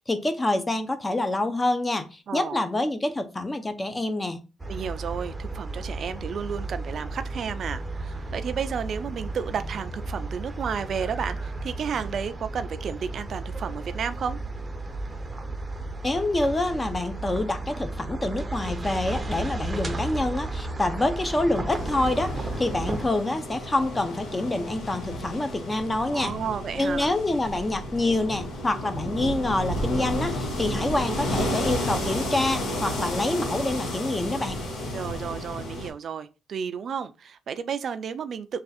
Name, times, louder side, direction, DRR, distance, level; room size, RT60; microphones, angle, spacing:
voice 1, 0.1-4.4 16.0-26.3 26.8-34.6, left 2 dB, 20° left, 0.6 m, -27 dB
voice 2, 2.3-2.6 4.7-14.4 26.1-27.1 34.9-38.6, right 7 dB, 55° right, 0.3 m, -32 dB
sound 1, 4.6-23.1, right 2 dB, 20° right, 0.6 m, -34 dB
sound 2, 21.7-35.9, left 1 dB, 70° left, 1.3 m, -32 dB
3.4 x 2.4 x 4.1 m
cardioid pair, 90°, 0 cm